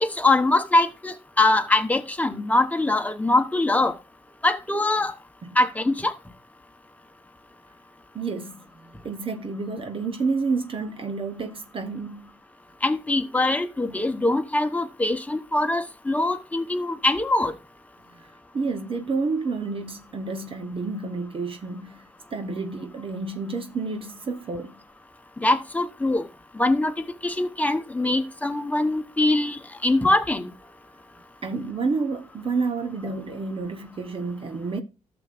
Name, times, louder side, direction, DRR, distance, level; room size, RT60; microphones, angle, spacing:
voice 1, 0.0-3.9 4.4-5.1 5.6-6.1 12.8-17.5 25.4-26.2 26.6-26.9 27.2-30.5, left 2 dB, 10° left, 1.1 m, -23 dB
voice 2, 8.1-12.4 18.5-22.1 22.3-24.7 31.4-34.8, right 4 dB, 45° right, 1.0 m, -29 dB
13.5 x 7.0 x 2.5 m
cardioid pair, 100°, 13 cm